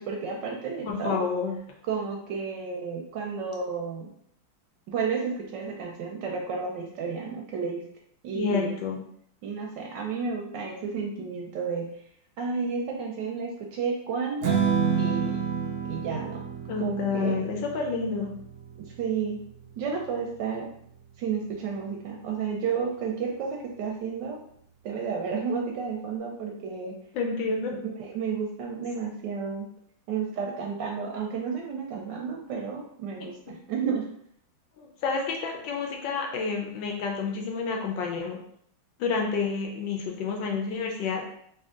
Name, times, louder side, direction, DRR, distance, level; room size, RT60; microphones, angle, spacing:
voice 1, 0.0-1.3 1.9-4.1 4.9-7.8 8.2-8.7 9.4-11.9 12.4-14.6 15.0-15.4 15.9-16.4 16.8-17.4 19.0-19.4 19.8-20.7 21.2-24.4 24.8-27.0 27.7-29.7 30.1-34.1, right 5 dB, 70° right, 0 dB, 1.1 m, -32 dB
voice 2, 0.8-1.6 8.3-9.0 16.7-18.3 27.1-27.7 34.8-38.4 39.0-41.2, left 5 dB, 75° left, 1 dB, 1.3 m, -29 dB
Strum, 14.4-20.7, right 6 dB, 90° right, 0.7 m, -30 dB
3.4 x 2.7 x 3.6 m, 0.68 s
omnidirectional pair, 2.3 m